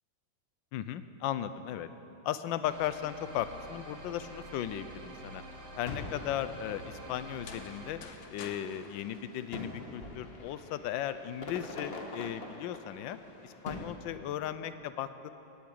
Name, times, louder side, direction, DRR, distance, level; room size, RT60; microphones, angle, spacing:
voice 1, 0.7-1.9 2.2-5.4 5.8-8.0 8.3-13.2 13.4-15.3, left 11 dB, 75° left, 12 dB, 1.3 m, -36 dB
sound 1, 2.7-7.9, right 1 dB, 45° right, 2.1 m, -48 dB
sound 2, 3.2-13.9, left 2 dB, 35° left, 1.4 m, -46 dB
sound 3, 7.3-10.2, left 5 dB, 55° left, 1.3 m, -50 dB
15.5 x 8.8 x 9.2 m, 2.8 s
omnidirectional pair, 2.2 m